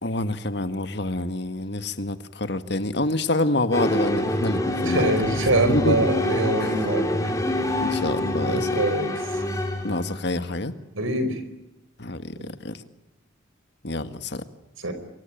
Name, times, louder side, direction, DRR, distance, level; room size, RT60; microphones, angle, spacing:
voice 1, 0.0-5.4 5.7-6.0 6.6-6.8 7.8-8.7 9.8-10.7 12.0-12.8 13.8-14.4, left 2 dB, 55° left, 10 dB, 1.8 m, -27 dB
sound 1, 3.7-10.3, left 1 dB, 15° left, 4.2 m, -26 dB
voice 2, 4.8-7.3 7.9-8.0 8.5-9.4 10.9-11.4 12.4-12.5 14.8-14.9, right 2 dB, 90° right, 10 dB, 5.0 m, -25 dB
25.5 x 24.5 x 9.1 m, 0.93 s
head